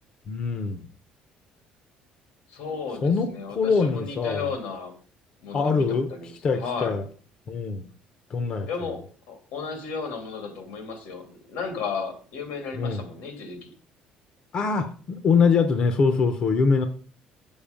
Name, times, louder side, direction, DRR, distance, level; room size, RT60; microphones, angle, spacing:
voice 1, 0.3-0.8 3.0-3.3 3.5-4.5 5.5-6.1 6.4-7.0 7.5-7.9 8.3-8.7 12.7-13.0 14.5-16.8, left 5 dB, 35° left, 9 dB, 0.7 m, -23 dB
voice 2, 2.5-4.9 5.4-7.0 8.7-13.7, left 5 dB, 85° left, 5 dB, 2.6 m, -34 dB
7.9 x 7.1 x 5.1 m, 0.42 s
cardioid pair, 175°, 3 cm